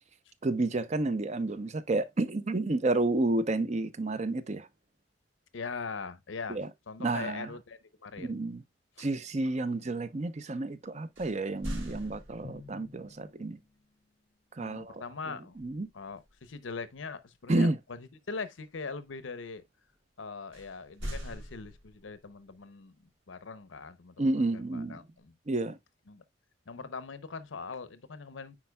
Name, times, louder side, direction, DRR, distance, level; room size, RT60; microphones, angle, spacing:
voice 1, 0.4-4.7 6.5-6.7 7.0-7.5 8.2-8.6 9.0-13.6 14.5-15.9 17.5-17.8 24.2-25.0 25.5-25.8, right 2 dB, 35° right, 0.6 m, -30 dB
voice 2, 5.5-6.6 6.9-8.3 9.0-9.1 14.6-15.6 15.9-19.6 20.2-25.3 26.1-26.2 26.7-28.6, left 4 dB, 80° left, 0.7 m, -41 dB
sound 1, 11.2-12.8 15.5-15.9 16.3-16.5 20.5-22.2, equal, 80° right, 3.1 m, -41 dB
Drum, 12.4-14.2, left 3 dB, 35° left, 0.6 m, -51 dB
9.7 x 4.3 x 2.2 m
head